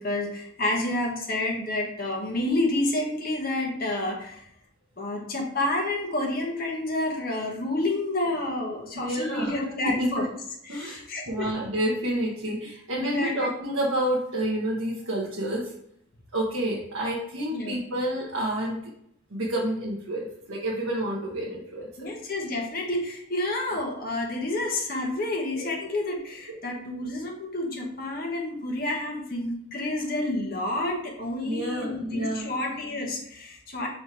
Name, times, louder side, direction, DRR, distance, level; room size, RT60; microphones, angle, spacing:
voice 1, 0.0-4.4 5.0-10.3 10.7-11.5 13.0-13.4 17.5-17.8 22.0-33.9, left 2 dB, 45° left, 0 dB, 1.3 m, -29 dB
voice 2, 8.9-9.5 9.8-10.3 10.7-15.7 16.3-18.9 19.3-22.1 25.6-25.7 26.5-26.7 31.4-32.5, right 1 dB, 80° right, -5 dB, 1.2 m, -29 dB
4.9 x 4.2 x 4.7 m, 0.72 s
head